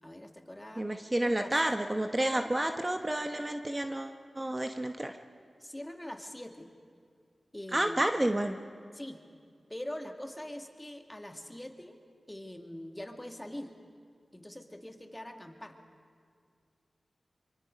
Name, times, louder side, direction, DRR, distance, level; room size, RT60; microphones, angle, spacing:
voice 1, 0.0-0.9 1.2-1.6 2.2-2.6 5.6-6.7 7.5-8.0 8.9-9.2 9.7-12.0 12.3-13.7 14.3-15.8, left 1 dB, 15° left, 4 dB, 2.3 m, -43 dB
voice 2, 0.8-5.1 7.7-8.6, right 1 dB, 25° right, 5 dB, 1.1 m, -30 dB
25.0 x 23.5 x 5.3 m, 2.2 s
cardioid pair, 40°, 0 cm